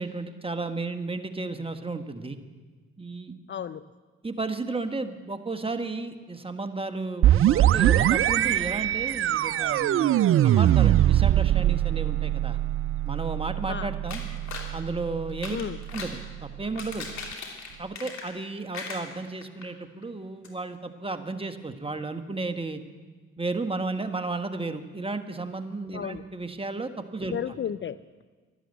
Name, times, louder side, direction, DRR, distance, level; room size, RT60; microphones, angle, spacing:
voice 1, 0.0-2.4 3.0-3.4 4.2-12.6 13.0-14.2 14.7-15.6 15.9-17.1 17.8-22.8 23.4-27.4, right 3 dB, 15° right, 8 dB, 1.5 m, -33 dB
voice 2, 3.5-3.8 13.7-13.9 15.5-15.8 25.9-26.2 27.3-28.2, left 8 dB, 35° left, 13 dB, 0.5 m, -33 dB
sound 1, 7.2-16.8, right 12 dB, 45° right, 0.4 m, -23 dB
sound 2, 14.1-14.7 15.3-16.2 16.6-18.4 18.7-19.6 20.0-20.1 20.4-20.5, left 4 dB, 60° left, 3.1 m, -39 dB
12.5 x 12.0 x 8.2 m, 1.4 s
hypercardioid pair, 50°, 32 cm